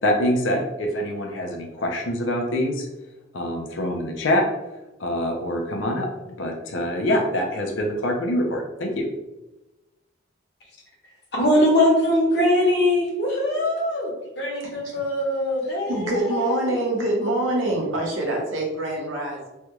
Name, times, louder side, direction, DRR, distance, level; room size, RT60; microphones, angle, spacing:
voice 1, 0.0-2.9 3.3-4.4 5.0-6.1 6.4-9.1, left 1 dB, 80° left, 2 dB, 0.6 m, -25 dB
voice 2, 11.3-14.1 14.4-16.7, left 1 dB, 60° left, -3 dB, 1.1 m, -22 dB
voice 3, 14.6-15.0 15.9-19.5, right 1 dB, 90° right, -1 dB, 0.9 m, -25 dB
3.3 x 2.3 x 2.9 m, 1.0 s
head